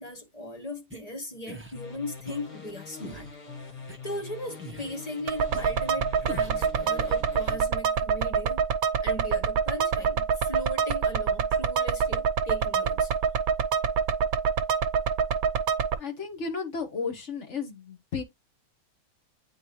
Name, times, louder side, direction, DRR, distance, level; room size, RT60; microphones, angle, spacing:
voice 1, 0.0-3.3 4.0-8.7 9.0-13.1, left 1 dB, 25° left, 1.6 m, -38 dB
sound 1, 0.9-1.0 1.5-1.7 2.3-2.4 3.0-3.3 3.9-4.0 4.6-5.0 5.5-5.6 6.3-6.6, right 1 dB, 10° right, 0.9 m, -41 dB
sound 2, 1.7-7.5, left 5 dB, 80° left, 2.7 m, -43 dB
sound 3, 5.3-15.9, right 6 dB, 75° right, 1.2 m, -26 dB
voice 2, 16.0-18.2, left 5 dB, 55° left, 1.7 m, -33 dB
8.8 x 4.0 x 3.1 m
omnidirectional pair, 1.5 m